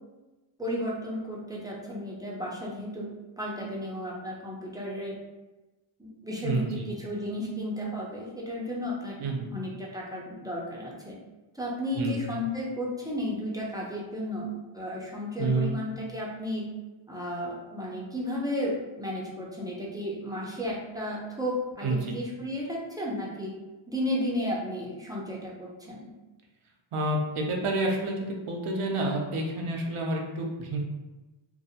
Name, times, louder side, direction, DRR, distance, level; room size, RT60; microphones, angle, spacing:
voice 1, 0.6-3.1 3.4-5.1 6.0-9.2 9.5-11.2 11.5-14.5 14.7-16.7 17.1-23.5 23.9-26.1, left 1 dB, 10° right, -4 dB, 0.5 m, -33 dB
voice 2, 6.4-6.9 9.2-9.5 12.0-12.2 15.4-15.7 21.8-22.2 26.9-30.8, right 2 dB, 85° right, 0 dB, 0.6 m, -29 dB
2.5 x 2.0 x 2.7 m, 1.1 s
wide cardioid pair, 105°, 49 cm